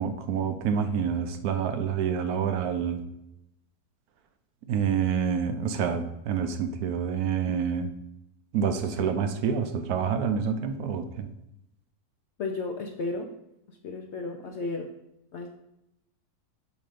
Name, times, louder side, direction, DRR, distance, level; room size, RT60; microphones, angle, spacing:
voice 1, 0.0-3.1 4.7-7.9 8.5-11.3, right 7 dB, 75° right, 8 dB, 1.1 m, -27 dB
voice 2, 12.4-13.3 13.7-14.9 15.3-15.5, left 3 dB, 65° left, 2 dB, 0.7 m, -33 dB
7.5 x 2.7 x 4.9 m, 0.85 s
omnidirectional pair, 1.7 m